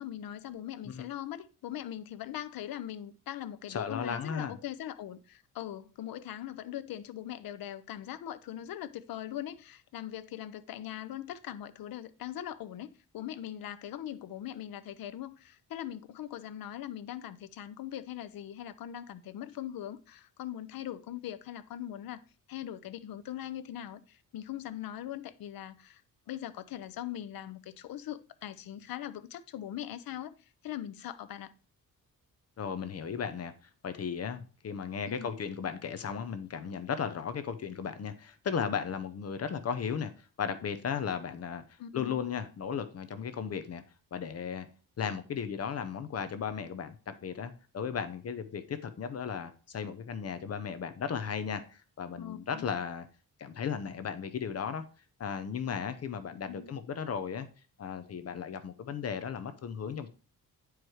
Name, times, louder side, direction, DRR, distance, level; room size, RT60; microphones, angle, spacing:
voice 1, 0.0-22.2 22.5-26.0 26.3-30.3 30.6-31.5 35.1-35.4 41.8-42.2 52.1-52.7 56.5-56.7, left 11 dB, 80° left, 0.7 m, -41 dB
voice 2, 3.7-4.6 32.6-33.5 33.8-43.8 44.1-44.7 45.0-53.1 53.4-54.8 55.2-57.5 57.8-60.1, left 7 dB, 45° left, 0.7 m, -35 dB
9.2 x 4.7 x 4.7 m
wide cardioid pair, 155°, 35 cm